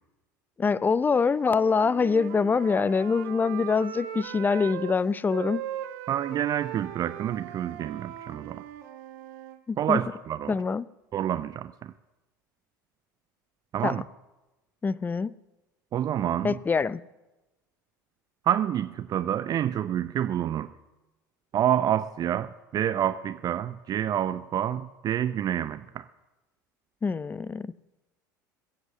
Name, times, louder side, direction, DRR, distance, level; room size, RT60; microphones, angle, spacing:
voice 1, 0.6-5.6 9.7-10.0 10.5-10.9 13.8-14.0 14.8-15.3 16.4-17.0 27.0-27.7, left 5 dB, 15° left, 0.5 m, -25 dB
Wind instrument woodwind instrument, 1.4-5.0 5.3-9.6, right 12 dB, 65° right, 1.3 m, -39 dB
voice 2, 6.1-8.6 9.8-10.5 11.1-11.9 13.7-14.0 15.9-16.5 18.4-20.7 21.5-26.0, right 10 dB, 40° right, 0.6 m, -28 dB
22.0 x 8.0 x 7.5 m
figure-of-eight pair, 70°, 11 cm